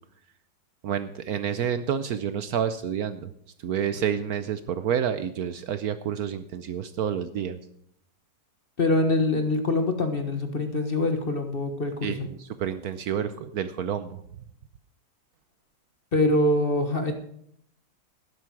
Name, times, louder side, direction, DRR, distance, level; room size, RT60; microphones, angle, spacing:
voice 1, 0.8-3.3 3.6-7.6 12.0-14.2, right 8 dB, 65° right, 12 dB, 1.1 m, -29 dB
voice 2, 8.8-12.3 16.1-17.1, left 2 dB, 35° left, 6 dB, 1.4 m, -24 dB
12.5 x 11.0 x 4.7 m, 0.69 s
omnidirectional pair, 1.9 m